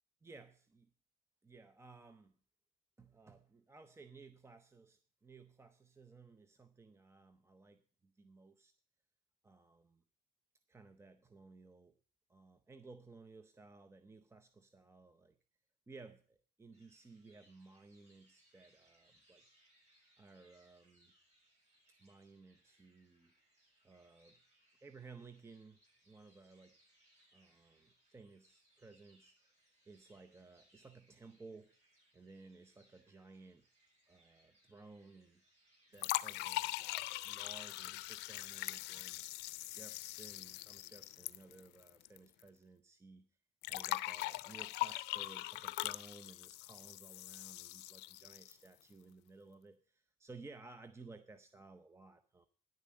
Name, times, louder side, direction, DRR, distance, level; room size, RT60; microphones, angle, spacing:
voice 1, 0.2-0.9 1.4-2.3 3.0-8.7 9.4-10.0 10.7-11.9 12.3-15.4 15.9-19.4 20.2-21.1 22.0-23.3 23.8-24.4 24.8-25.8 26.1-26.8 27.3-29.5 29.8-31.7 32.1-33.7 34.1-35.4 35.9-36.9 37.2-43.3 43.6-52.5, right 3 dB, 15° right, 10 dB, 0.7 m, -57 dB
sound 1, 16.7-36.1, right 1 dB, 40° right, 7.0 m, -72 dB
sound 2, 36.0-42.2 42.4-42.5 43.6-48.7, left 19 dB, 90° left, 0.5 m, -41 dB
10.0 x 6.9 x 7.4 m, 0.43 s
cardioid pair, 110°, 17 cm